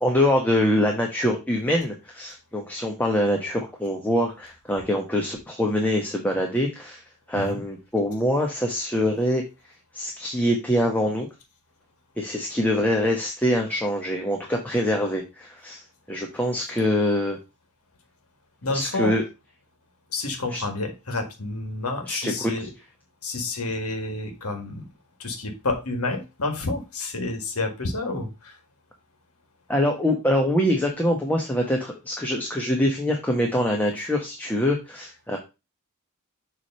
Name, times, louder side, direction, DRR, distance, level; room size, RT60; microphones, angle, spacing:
voice 1, 0.0-7.0 7.3-9.4 9.9-11.3 12.2-15.8 16.1-17.4 18.7-19.2 20.5-20.6 22.0-22.7 29.7-35.4, left 1 dB, 10° left, 0 dB, 1.1 m, -24 dB
voice 2, 18.6-19.2 20.1-22.7 23.2-24.8 25.2-28.5, left 2 dB, 75° left, 5 dB, 1.7 m, -29 dB
7.1 x 3.4 x 5.5 m, 0.26 s
head